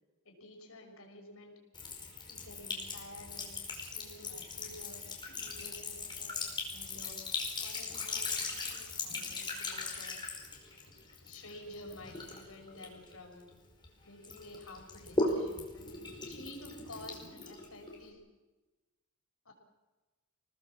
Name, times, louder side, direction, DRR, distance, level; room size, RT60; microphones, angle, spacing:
voice 1, 0.2-1.5 1.8-1.9 2.2-3.5 3.9-6.3 6.7-7.2 7.6-10.2 11.2-13.5 14.0-18.2 19.4-19.5, left 1 dB, 70° left, 2 dB, 6.2 m, -51 dB
Sink (filling or washing) / Trickle dribble, 1.7-13.9 14.2-18.1, left 3 dB, 20° left, 5.1 m, -39 dB
28.5 x 19.0 x 7.4 m, 1.2 s
head